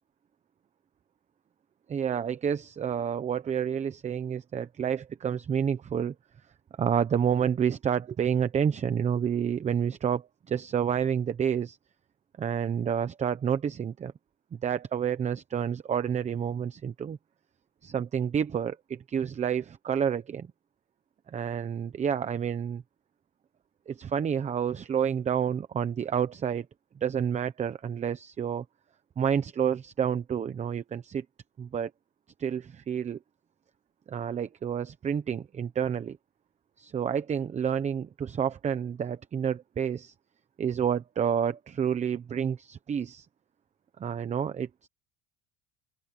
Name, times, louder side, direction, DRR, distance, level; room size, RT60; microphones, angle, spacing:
voice 1, 1.9-6.1 6.8-11.8 12.4-14.1 14.6-17.2 17.9-20.5 21.3-22.8 23.9-26.7 27.0-28.6 29.2-31.2 31.6-31.9 32.4-33.2 34.1-36.2 36.8-40.1 40.6-43.3 44.0-44.9, right 8 dB, 20° right, 0.9 m, -29 dB
open air
cardioid pair, 160°, 32 cm